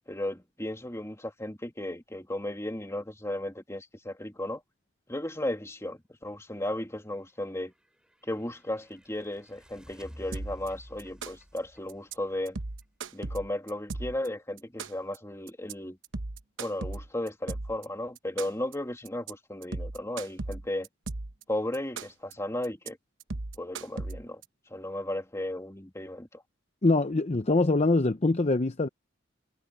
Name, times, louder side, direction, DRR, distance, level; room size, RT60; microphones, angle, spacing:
voice 1, 0.1-4.6 5.1-7.7 8.2-12.6 13.1-16.0 16.6-20.9 21.5-23.0 23.6-24.4 24.7-26.4, left 1 dB, 15° left, 2.7 m, -35 dB
sound 1, 7.4-13.2, equal, 5° right, 7.4 m, -51 dB
sound 2, 10.3-10.7 11.0-11.6 11.9-12.1 12.5-14.3 14.6-15.2 15.5-15.7 16.0-17.8 18.2-18.7 19.0-19.3 19.6-21.4 21.7-22.3 22.6-22.9 23.2-24.4, right 3 dB, 75° right, 1.0 m, -36 dB
voice 2, 26.8-28.9, left 2 dB, 35° left, 0.7 m, -24 dB
head